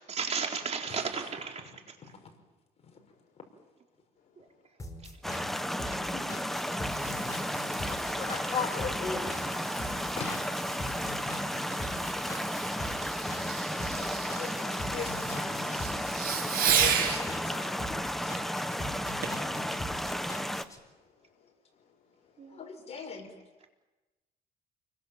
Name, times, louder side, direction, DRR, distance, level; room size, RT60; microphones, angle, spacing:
voice 1, 0.1-2.1 4.4-4.5 5.0-5.4 5.8-6.0 22.4-22.6, right 5 dB, 40° right, 2 dB, 4.0 m, -35 dB
voice 2, 2.9-3.7 4.2-4.7 5.1-5.6 18.7-22.7, left 5 dB, 55° left, 0 dB, 4.7 m, -68 dB
sound 1, 4.8-20.8, left 1 dB, 20° left, 4.5 m, -42 dB
sound 2, 5.2-20.6, equal, ahead, 1.2 m, -33 dB
Fireworks, 6.2-17.2 19.2-19.5 20.1-20.2, right 8 dB, 60° right, 7.1 m, -35 dB
voice 3, 7.7-9.8 10.1-10.4 10.8-11.0 13.8-15.8 16.7-17.9 18.2-18.3 22.5-23.3, left 5 dB, 40° left, 4 dB, 5.6 m, -39 dB
29.5 x 22.5 x 7.4 m, 1.1 s
cardioid pair, 110°, 17 cm